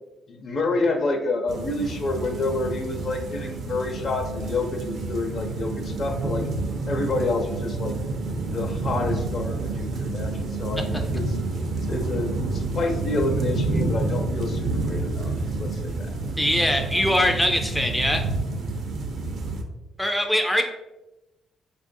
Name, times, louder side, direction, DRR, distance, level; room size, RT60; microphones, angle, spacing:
voice 1, 0.3-6.4 6.9-7.9 8.5-11.2 11.7-16.1, left 3 dB, 55° left, 3 dB, 0.6 m, -28 dB
sound 1, 1.5-19.6, right 3 dB, 65° right, 0.5 m, -29 dB
voice 2, 16.4-18.2 20.0-20.6, equal, 5° left, 3 dB, 0.3 m, -22 dB
4.5 x 2.4 x 2.6 m, 1.0 s
cardioid pair, 90°, 0 cm